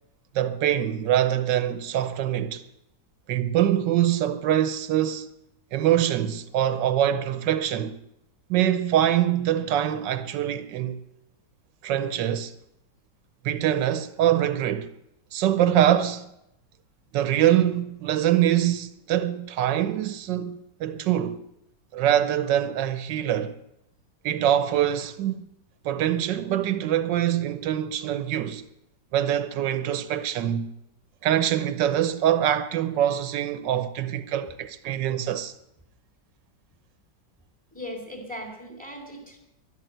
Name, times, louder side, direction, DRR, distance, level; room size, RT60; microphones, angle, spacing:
voice 1, 0.3-2.6 3.3-5.3 5.7-8.0 8.5-11.0 11.8-12.5 13.4-14.9 15.3-16.3 17.1-21.4 21.9-23.5 24.2-25.4 25.8-28.6 29.1-30.7 31.2-35.5, right 11 dB, 85° right, 1.5 m, -24 dB
voice 2, 37.7-39.4, equal, 5° left, 3.7 m, -38 dB
12.5 x 12.0 x 9.1 m
omnidirectional pair, 1.9 m